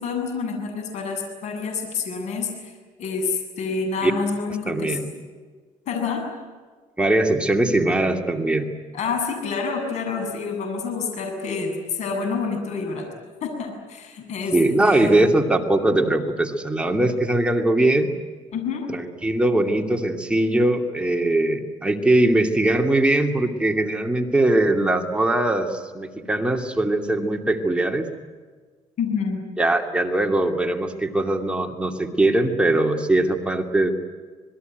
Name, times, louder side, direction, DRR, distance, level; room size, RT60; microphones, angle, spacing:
voice 1, 0.0-2.7 3.0-5.0 5.9-6.2 8.9-13.1 13.4-14.6 14.8-15.3 18.5-18.9 29.0-29.4, left 5 dB, 65° left, 4 dB, 7.6 m, -28 dB
voice 2, 4.7-5.0 7.0-8.7 14.5-18.1 18.9-28.1 29.6-33.9, right 1 dB, 10° right, 3 dB, 2.6 m, -21 dB
26.5 x 21.0 x 9.3 m, 1.5 s
cardioid pair, 110°, 13 cm